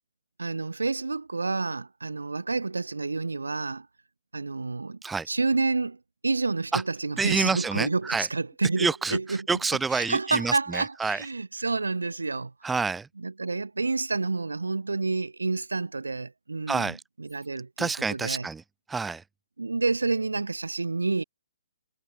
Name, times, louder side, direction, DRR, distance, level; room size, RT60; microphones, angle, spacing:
voice 1, 0.4-3.9 4.3-5.0 5.3-9.5 9.9-12.5 13.2-18.5 19.6-21.2, right 3 dB, 85° right, 0.9 m, -29 dB
voice 2, 7.2-8.3 8.8-9.2 9.5-11.2 12.6-13.1 16.7-17.0 17.8-18.6 18.9-19.2, right 4 dB, 10° right, 0.5 m, -28 dB
figure-of-eight pair, 130°, 0 cm